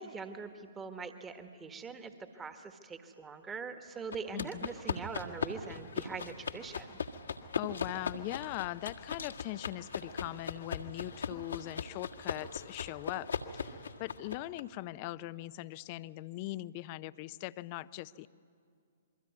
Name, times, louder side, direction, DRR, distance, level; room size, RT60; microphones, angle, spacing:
voice 1, 0.0-7.0, right 5 dB, 15° right, 8 dB, 1.5 m, -43 dB
sound 1, 4.1-14.6, left 5 dB, 70° left, 1.6 m, -39 dB
voice 2, 4.3-4.7 7.6-18.3, left 17 dB, 35° left, 17 dB, 0.6 m, -41 dB
27.5 x 23.0 x 9.5 m, 2.4 s
figure-of-eight pair, 115°, 0 cm